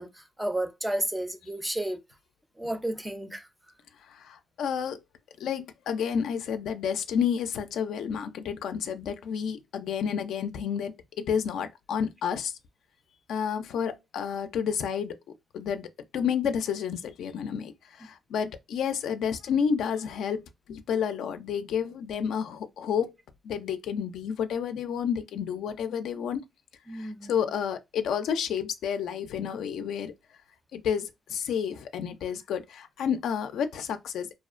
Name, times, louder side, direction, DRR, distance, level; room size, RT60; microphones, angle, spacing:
voice 1, 0.0-2.0 2.6-3.5 26.9-27.3, right 1 dB, 5° right, 0.4 m, -32 dB
voice 2, 4.1-5.0 5.4-12.5 13.3-15.2 15.5-23.1 23.4-26.4 26.9-30.1 30.7-34.3, left 7 dB, 75° left, 0.3 m, -30 dB
2.4 x 2.0 x 2.4 m
cardioid pair, 90°, 0 cm